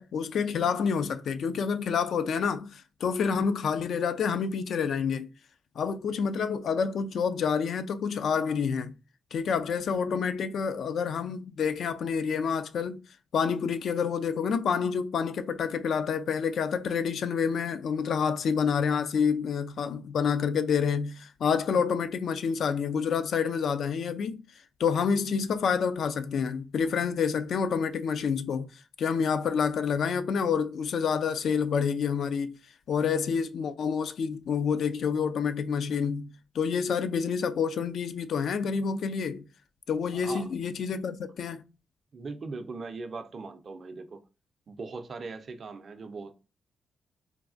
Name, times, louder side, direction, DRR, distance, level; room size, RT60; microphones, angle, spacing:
voice 1, 0.0-5.3 5.8-9.0 9.3-13.0 13.3-24.4 24.8-28.7 29.0-32.5 32.9-39.4 39.9-41.6, left 6 dB, 65° left, 0.3 m, -28 dB
voice 2, 40.1-40.5 42.1-44.2 44.7-46.3, right 3 dB, 55° right, 0.5 m, -39 dB
3.3 x 2.3 x 2.5 m
hypercardioid pair, 40°, 0 cm